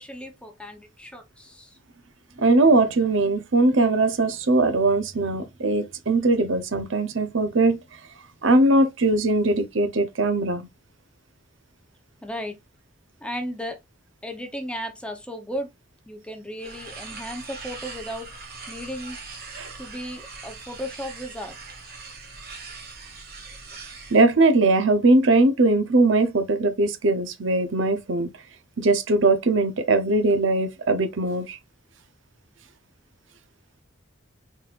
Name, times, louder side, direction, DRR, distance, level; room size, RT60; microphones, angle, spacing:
voice 1, 0.0-1.8 12.2-12.6 13.2-13.8 14.2-15.7 16.1-18.3 18.7-19.2 19.8-21.6, equal, 5° left, 0.8 m, -35 dB
voice 2, 2.4-7.8 8.4-10.7 19.6-19.7 24.1-28.3 28.8-31.6, right 2 dB, 65° right, 0.8 m, -20 dB
sound 1, 16.6-24.2, right 4 dB, 45° right, 1.5 m, -41 dB
4.1 x 4.1 x 2.5 m
head